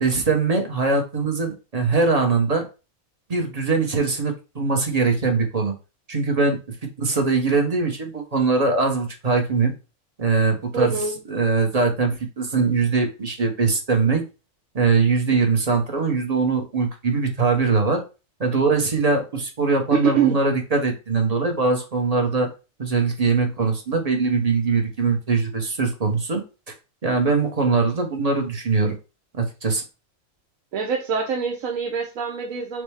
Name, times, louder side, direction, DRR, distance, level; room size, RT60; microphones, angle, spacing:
voice 1, 0.0-2.6 3.3-5.7 6.1-6.6 7.0-9.7 10.2-11.0 11.3-14.2 14.7-18.0 18.4-22.5 22.8-26.4 27.0-28.9 29.3-29.8, right 4 dB, 35° right, 3 dB, 0.8 m, -21 dB
voice 2, 10.7-11.2 19.9-20.4 30.7-32.8, right 7 dB, 80° right, 0 dB, 1.2 m, -24 dB
6.1 x 2.1 x 3.4 m, 0.30 s
omnidirectional pair, 1.4 m